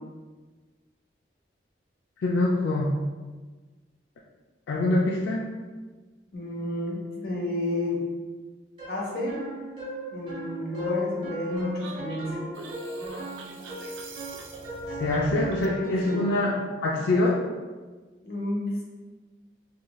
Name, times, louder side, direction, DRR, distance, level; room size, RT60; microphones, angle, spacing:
voice 1, 2.2-3.0 4.7-5.5 15.0-16.5 16.8-17.4, left 2 dB, 85° left, -2 dB, 0.3 m, -24 dB
voice 2, 6.3-8.0 8.9-9.4 10.1-12.4 16.0-16.2 18.2-18.8, left 1 dB, 55° left, -3 dB, 0.7 m, -30 dB
sound 1, 8.8-16.5, left 1 dB, 30° right, 0.7 m, -37 dB
sound 2, 11.8-15.8, right 3 dB, 80° right, 0.3 m, -42 dB
3.0 x 2.5 x 2.2 m, 1.3 s
head